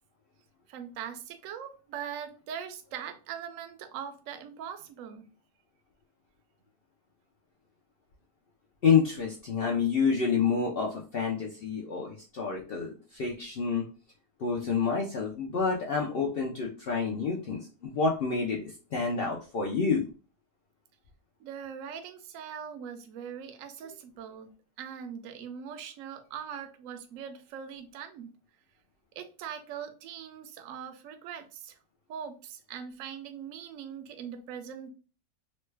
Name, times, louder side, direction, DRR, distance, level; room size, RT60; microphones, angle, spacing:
voice 1, 0.7-5.2 21.4-24.5 24.8-28.3 29.2-31.8 32.1-34.9, right 8 dB, 70° right, 7 dB, 0.8 m, -41 dB
voice 2, 8.8-13.9 14.4-18.6 18.9-20.1, left 5 dB, 80° left, -1 dB, 0.5 m, -28 dB
3.1 x 2.2 x 3.2 m, 0.35 s
omnidirectional pair, 1.7 m